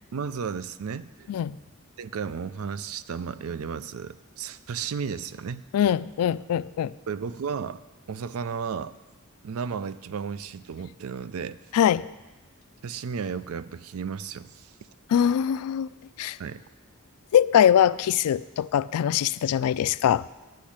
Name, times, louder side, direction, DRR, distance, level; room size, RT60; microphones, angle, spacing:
voice 1, 0.1-1.3 2.0-5.6 7.1-7.8 8.1-9.0 9.4-11.6 12.8-14.7 16.4-16.6, right 6 dB, 70° right, 0.4 m, -33 dB
voice 2, 5.7-6.9 11.7-12.1 15.1-15.9 16.2-16.4 17.3-20.3, left 9 dB, 85° left, 0.3 m, -22 dB
10.0 x 6.3 x 8.6 m
head